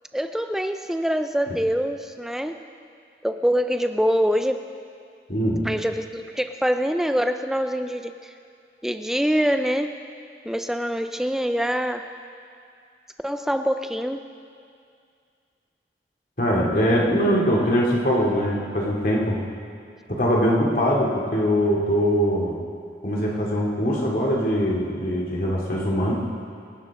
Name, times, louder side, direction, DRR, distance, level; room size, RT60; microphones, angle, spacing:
voice 1, 0.1-2.6 3.2-4.6 5.6-8.3 8.8-10.0 10.4-12.1 13.2-14.2, equal, 5° right, 7 dB, 0.4 m, -24 dB
voice 2, 5.3-5.7 16.4-19.4 20.1-22.6 23.0-26.1, equal, 50° left, -3 dB, 2.6 m, -22 dB
25.5 x 11.5 x 3.7 m, 2.3 s
head